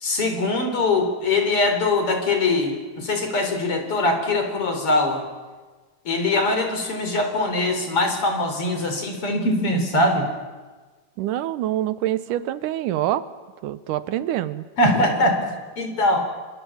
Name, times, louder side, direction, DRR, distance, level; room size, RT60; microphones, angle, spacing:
voice 1, 0.0-5.2 6.1-10.3 14.8-15.5 15.8-16.3, left 2 dB, 40° left, 5 dB, 4.6 m, -22 dB
voice 2, 11.2-13.3 13.6-14.7, right 13 dB, 75° right, 13 dB, 2.4 m, -25 dB
28.5 x 24.5 x 7.3 m, 1.3 s
omnidirectional pair, 3.8 m